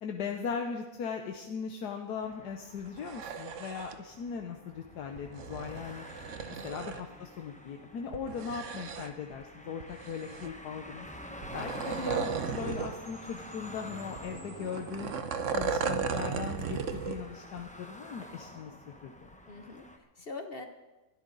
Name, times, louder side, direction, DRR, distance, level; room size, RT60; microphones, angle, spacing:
voice 1, 0.0-6.1 6.5-15.1 15.5-19.1, left 6 dB, 85° left, 3 dB, 1.5 m, -39 dB
sound 1, 2.2-20.0, left 1 dB, 5° left, 0.7 m, -48 dB
sound 2, 2.9-4.0 5.2-7.0 8.1-9.3 9.8-10.7 11.4-13.0 13.3-13.4 14.2-17.2 17.6-17.7, right 6 dB, 55° right, 1.1 m, -36 dB
voice 2, 6.5-6.9 19.5-20.7, left 3 dB, 45° left, 6 dB, 1.0 m, -44 dB
Percussion / Wind chime, 12.5-17.1, right 1 dB, 10° right, 6.2 m, -59 dB
21.0 x 12.5 x 4.0 m, 1.1 s
omnidirectional pair, 1.7 m